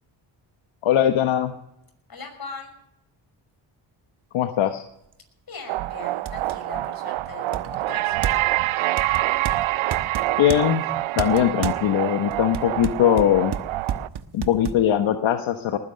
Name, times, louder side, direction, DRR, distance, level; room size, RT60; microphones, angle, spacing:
voice 1, 0.8-1.5 4.3-4.8 10.4-10.9 11.2-13.6 14.3-15.8, left 11 dB, 80° left, 7 dB, 1.2 m, -20 dB
voice 2, 2.1-2.7 5.5-8.2, left 4 dB, 50° left, 4 dB, 5.9 m, -39 dB
sound 1, 5.1-5.2 5.7-5.8 6.3-6.6 7.5-8.6 9.0-10.6 11.2-11.8 12.3-14.8, right 8 dB, 60° right, 1.2 m, -31 dB
sound 2, 5.7-14.1, right 16 dB, 90° right, 0.6 m, -26 dB
20.0 x 9.8 x 6.4 m, 0.81 s
cardioid pair, 75°, 46 cm